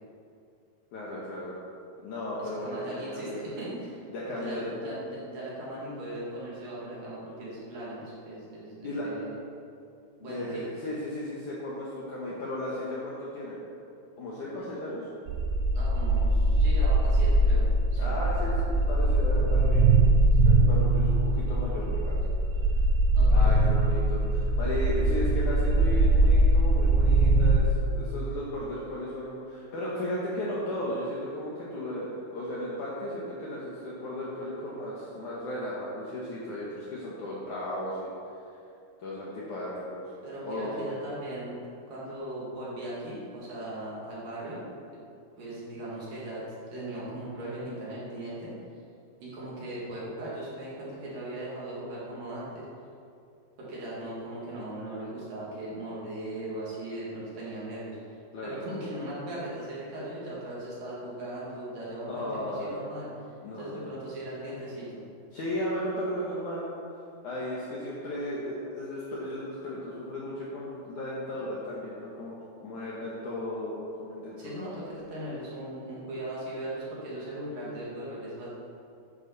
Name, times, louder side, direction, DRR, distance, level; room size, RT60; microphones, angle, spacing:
voice 1, 0.9-1.5 2.0-3.4 4.1-4.7 8.8-9.1 10.2-13.6 14.2-15.0 18.0-19.9 20.2-22.1 23.3-38.1 39.0-40.1 40.4-40.9 58.3-58.5 62.1-62.7 63.4-63.8 65.3-66.7 67.2-74.7, left 1 dB, 75° left, -6 dB, 1.8 m, -35 dB
voice 2, 2.4-9.4 10.2-10.6 14.6-14.7 15.7-18.1 23.2-23.6 40.2-41.6 41.9-44.6 44.9-45.0 45.4-48.5 49.2-52.7 53.6-58.0 58.4-63.1 63.5-65.0 74.4-78.5, right 1 dB, 50° right, -7 dB, 3.6 m, -38 dB
sound 1, 15.3-27.6, right 1 dB, 85° right, 3.3 m, -22 dB
12.0 x 9.9 x 4.2 m, 2.5 s
omnidirectional pair, 5.8 m